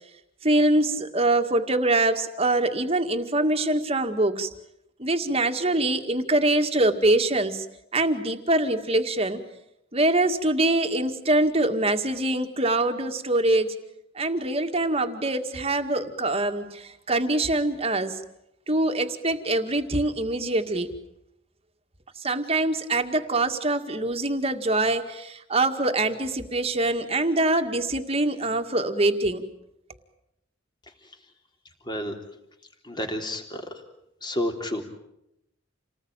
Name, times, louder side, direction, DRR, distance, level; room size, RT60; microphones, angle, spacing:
voice 1, 0.4-4.5 5.0-7.6 7.9-9.4 9.9-13.7 14.2-18.1 18.7-20.9 22.2-29.4, right 2 dB, 30° right, 6 dB, 2.1 m, -24 dB
voice 2, 32.9-33.6 34.2-34.8, left 1 dB, 25° left, 4 dB, 3.4 m, -30 dB
28.5 x 19.5 x 9.0 m, 0.82 s
head